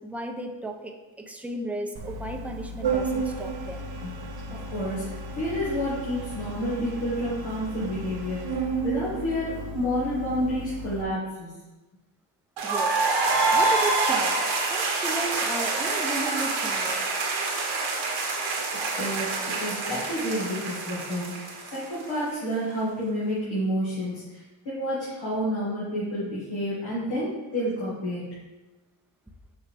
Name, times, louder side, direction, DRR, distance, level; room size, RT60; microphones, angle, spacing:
voice 1, 0.0-3.9 12.6-13.0 13.5-14.4 14.7-17.1, right 2 dB, 5° right, 3 dB, 0.7 m, -34 dB
Organ, 1.9-11.0, right 3 dB, 55° right, 0.8 m, -33 dB
voice 2, 4.7-8.6 8.8-11.5 19.0-19.3 19.6-28.2, equal, 75° left, -9 dB, 2.2 m, -29 dB
sound 1, 12.6-22.3, right 3 dB, 75° right, 1.5 m, -26 dB
6.7 x 4.7 x 3.5 m, 1.1 s
cardioid pair, 70°, 46 cm